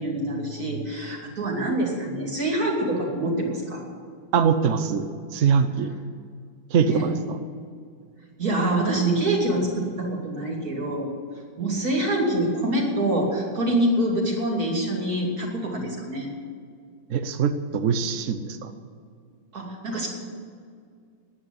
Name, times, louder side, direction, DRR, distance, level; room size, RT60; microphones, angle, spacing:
voice 1, 0.0-3.8 6.9-7.1 8.4-11.1 11.6-16.3 19.5-20.1, right 1 dB, 45° right, -1 dB, 3.0 m, -25 dB
voice 2, 4.3-5.1 5.3-5.9 6.7-7.1 17.1-18.7, right 6 dB, 70° right, 8 dB, 0.7 m, -22 dB
10.0 x 9.4 x 9.8 m, 2.1 s
omnidirectional pair, 2.2 m